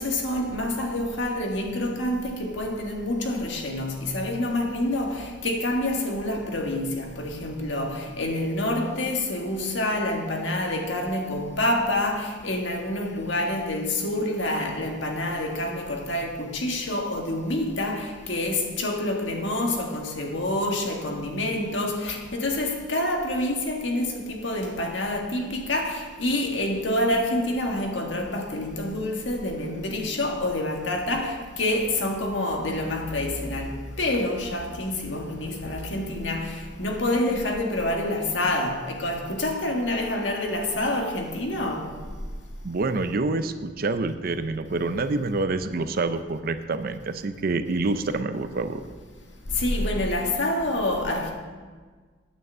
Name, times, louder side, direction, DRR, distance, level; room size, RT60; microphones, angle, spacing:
voice 1, 0.0-41.9 49.5-51.3, left 1 dB, 90° left, 1.7 m, -27 dB
voice 2, 42.6-48.8, right 3 dB, 55° right, 0.6 m, -27 dB
9.1 x 6.8 x 7.4 m
head